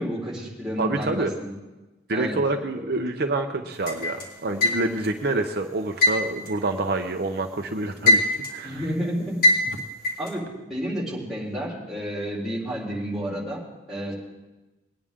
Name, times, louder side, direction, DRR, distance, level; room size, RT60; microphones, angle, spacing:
voice 1, 0.0-1.5 2.1-2.4 3.0-3.1 5.0-5.1 8.6-9.4 10.2-13.6 13.9-14.1, equal, ahead, -7 dB, 3.7 m, -30 dB
voice 2, 0.8-1.3 2.1-8.8, right 2 dB, 55° right, 4 dB, 0.7 m, -27 dB
sound 1, 3.9-5.2 6.0-7.4 7.7-8.7 9.4-10.3, left 1 dB, 50° left, 3.1 m, -21 dB
21.0 x 9.9 x 3.6 m, 1.1 s
head